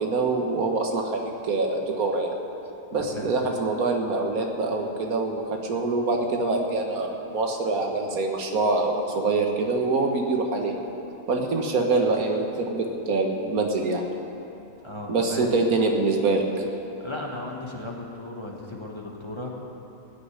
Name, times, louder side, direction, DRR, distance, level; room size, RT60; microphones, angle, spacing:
voice 1, 0.0-2.3 2.9-10.7 11.3-14.0 15.1-16.4, right 3 dB, 90° right, 2 dB, 1.8 m, -25 dB
voice 2, 3.0-3.3 14.8-15.5 17.0-19.5, left 2 dB, 20° left, -2 dB, 1.7 m, -36 dB
16.5 x 6.8 x 9.8 m, 2.9 s
omnidirectional pair, 1.5 m